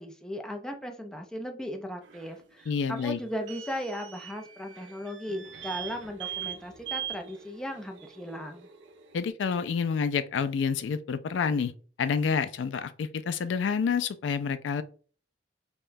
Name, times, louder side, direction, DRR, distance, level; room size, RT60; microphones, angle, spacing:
voice 1, 0.0-8.7, equal, 5° left, 0.5 m, -37 dB
sound 1, 2.0-9.3, right 10 dB, 85° right, 0.5 m, -42 dB
voice 2, 2.7-3.2 9.1-11.7 12.0-14.8, left 6 dB, 90° left, 0.3 m, -28 dB
5.6 x 2.2 x 2.6 m
head